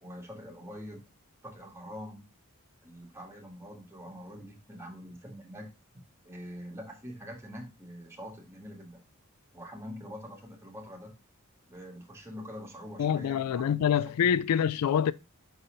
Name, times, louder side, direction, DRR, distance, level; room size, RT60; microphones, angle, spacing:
voice 1, 0.0-1.0 1.4-2.3 2.8-5.7 6.2-9.0 9.5-11.1 11.7-13.6 14.2-14.5, equal, 10° right, 1.8 m, -44 dB
voice 2, 13.0-15.1, left 8 dB, 85° left, 0.3 m, -26 dB
5.7 x 4.1 x 4.9 m
head